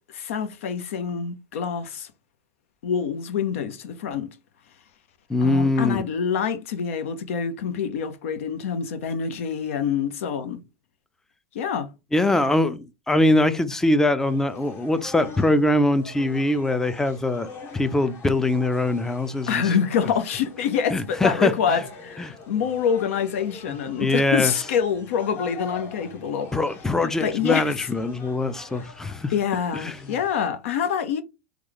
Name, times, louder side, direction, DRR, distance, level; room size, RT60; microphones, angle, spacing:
voice 1, 0.1-2.1 2.8-4.3 5.4-10.6 11.5-11.9 19.5-26.5 27.0-27.9 28.8-28.9 29.3-31.2, left 7 dB, 80° left, 0.7 m, -26 dB
voice 2, 5.3-6.0 12.1-17.5 17.7-19.6 20.9-21.5 22.2-22.3 24.0-24.5 26.5-29.3 29.7-30.1, left 2 dB, 5° left, 0.4 m, -22 dB
sound 1, 14.2-30.5, left 3 dB, 35° left, 0.9 m, -44 dB
3.1 x 2.3 x 3.7 m
supercardioid pair, 125°, 7 cm